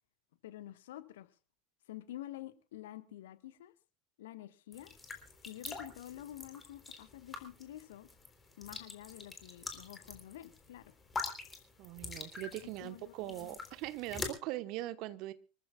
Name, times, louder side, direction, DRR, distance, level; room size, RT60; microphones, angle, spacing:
voice 1, 0.4-1.3 1.9-3.7 4.2-4.9 5.4-8.1 8.6-10.9 12.8-13.6, left 13 dB, 65° left, 1.4 m, -49 dB
sound 1, 4.7-14.3, left 3 dB, 15° left, 3.7 m, -45 dB
voice 2, 11.8-15.3, right 16 dB, 50° right, 1.2 m, -41 dB
25.5 x 14.5 x 2.4 m
figure-of-eight pair, 80°, 0 cm